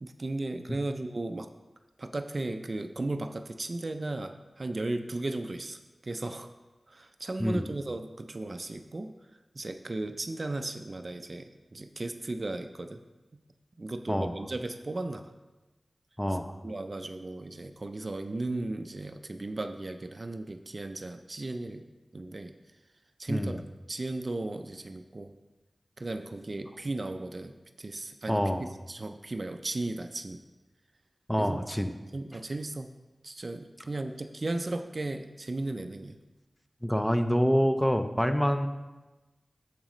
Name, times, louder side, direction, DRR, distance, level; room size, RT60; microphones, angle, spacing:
voice 1, 0.0-1.5 2.0-6.5 6.9-9.1 9.5-13.0 13.3-13.4 13.8-15.3 16.3-21.9 22.1-22.6 23.2-25.3 26.0-30.4 31.4-31.6 32.1-32.9 33.2-36.2, right 2 dB, 45° right, 7 dB, 0.4 m, -36 dB
voice 2, 14.1-14.4 16.2-16.5 23.3-23.6 28.3-28.6 31.3-32.0 36.8-38.7, equal, 5° left, 7 dB, 0.5 m, -26 dB
8.8 x 7.4 x 3.1 m, 1.1 s
wide cardioid pair, 80°, 0 cm